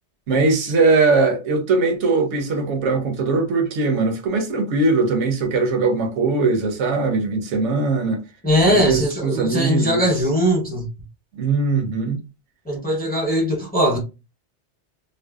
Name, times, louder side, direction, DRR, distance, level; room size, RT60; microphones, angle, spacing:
voice 1, 0.3-8.2 8.7-10.0 11.3-12.2, right 3 dB, 90° right, 1.0 m, -20 dB
voice 2, 8.4-10.9 12.6-14.0, equal, 10° left, 0.7 m, -20 dB
2.6 x 2.1 x 2.3 m
omnidirectional pair, 1.2 m